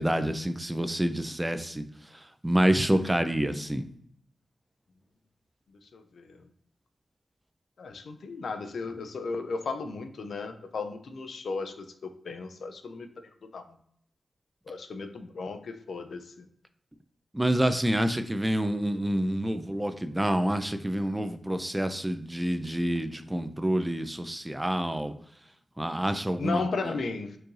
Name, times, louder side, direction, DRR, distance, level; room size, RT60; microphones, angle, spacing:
voice 1, 0.0-1.8 2.4-3.8 17.3-25.1 25.8-27.0, right 1 dB, 15° right, 9 dB, 0.4 m, -27 dB
voice 2, 5.9-6.5 7.8-13.1 13.5-13.6 14.7-16.5 26.4-27.4, left 4 dB, 80° left, 8 dB, 0.4 m, -35 dB
4.5 x 2.6 x 3.1 m, 0.65 s
cardioid pair, 55°, 0 cm